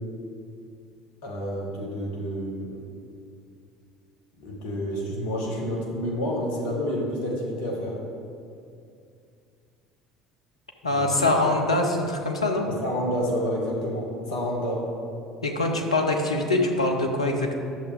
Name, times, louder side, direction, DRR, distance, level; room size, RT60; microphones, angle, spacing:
voice 1, 1.2-2.7 4.4-7.9 10.9-11.1 12.8-14.8, equal, 65° left, -2 dB, 1.9 m, -29 dB
voice 2, 10.8-12.7 15.4-17.5, left 2 dB, 85° left, 3 dB, 0.8 m, -23 dB
10.5 x 6.8 x 3.6 m, 2.4 s
figure-of-eight pair, 60°, 3 cm